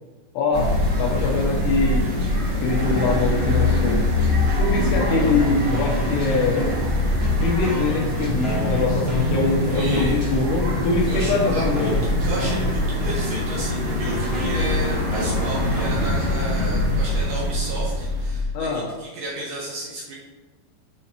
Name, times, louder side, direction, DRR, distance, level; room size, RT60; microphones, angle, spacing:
voice 1, 0.3-2.1 2.6-4.1 4.6-6.7 7.4-12.0 18.5-19.0, left 4 dB, 75° left, 0 dB, 2.8 m, -23 dB
sound 1, 0.5-18.4, left 1 dB, 50° right, 1.2 m, -23 dB
sound 2, 5.1-6.9 7.2-10.4 11.2-11.3 11.7-17.1, left 1 dB, 45° left, 0.7 m, -34 dB
voice 2, 9.7-10.2 11.1-11.9 12.2-20.2, right 1 dB, 75° right, -4 dB, 1.9 m, -32 dB
9.6 x 3.8 x 3.0 m, 1.3 s
omnidirectional pair, 5.0 m